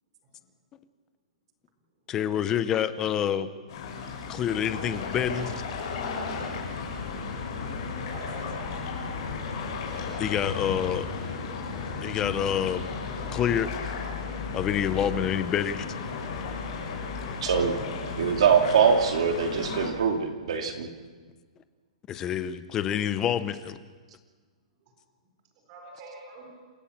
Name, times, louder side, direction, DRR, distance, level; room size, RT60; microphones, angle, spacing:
voice 1, 2.1-3.5 4.3-5.5 10.2-11.1 12.0-12.9 13.3-13.7 14.5-15.9 22.1-23.8, left 9 dB, 15° left, 13 dB, 0.7 m, -27 dB
sound 1, 3.7-19.9, left 4 dB, 40° left, 6.3 m, -34 dB
voice 2, 8.0-8.6 17.5-18.4 25.7-26.5, right 1 dB, 25° right, -1 dB, 4.2 m, -43 dB
voice 3, 17.4-17.8 18.2-20.9, right 6 dB, 55° right, 4 dB, 2.7 m, -23 dB
27.5 x 16.0 x 7.3 m, 1.5 s
hypercardioid pair, 180°, 4 cm